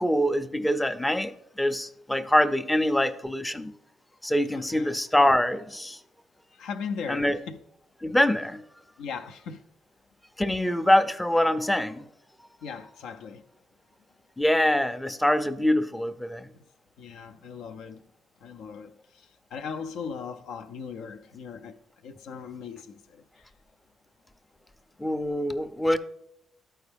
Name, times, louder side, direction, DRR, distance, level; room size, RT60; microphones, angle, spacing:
voice 1, 0.0-3.7 4.2-6.0 7.1-7.4 8.0-8.6 10.4-12.0 14.4-16.5 25.0-26.0, left 1 dB, 5° left, 0.4 m, -24 dB
voice 2, 4.5-4.9 6.5-7.6 9.0-9.6 12.6-13.5 16.5-16.6 17.0-18.0 18.4-21.8 22.0-23.4, left 6 dB, 85° left, 0.4 m, -38 dB
11.5 x 4.5 x 3.4 m
cardioid pair, 85°, 0 cm